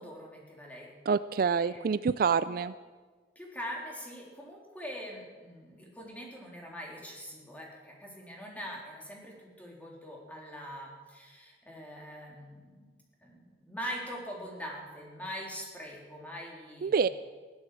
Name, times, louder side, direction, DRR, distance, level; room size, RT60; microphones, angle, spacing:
voice 1, 0.0-0.9 1.5-1.9 2.5-2.6 3.4-12.9 13.2-17.0, equal, 10° left, -2 dB, 3.6 m, -43 dB
voice 2, 1.1-2.7 16.8-17.1, right 5 dB, 55° right, 15 dB, 0.4 m, -27 dB
16.0 x 12.0 x 7.6 m, 1.4 s
head